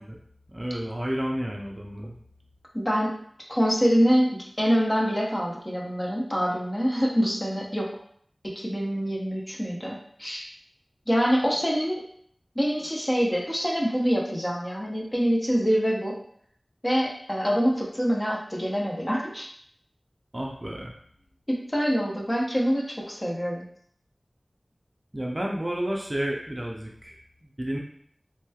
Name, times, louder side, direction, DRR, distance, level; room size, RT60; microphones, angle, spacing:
voice 1, 0.5-2.1 20.3-20.9 25.1-27.8, right 1 dB, 30° right, -1 dB, 0.5 m, -31 dB
voice 2, 2.7-3.1 3.5-7.9 8.6-10.5 11.1-12.0 12.6-16.1 16.8-19.5 21.5-23.6, equal, 20° left, -2 dB, 0.7 m, -25 dB
3.2 x 3.0 x 2.3 m, 0.63 s
wide cardioid pair, 50°, 0 cm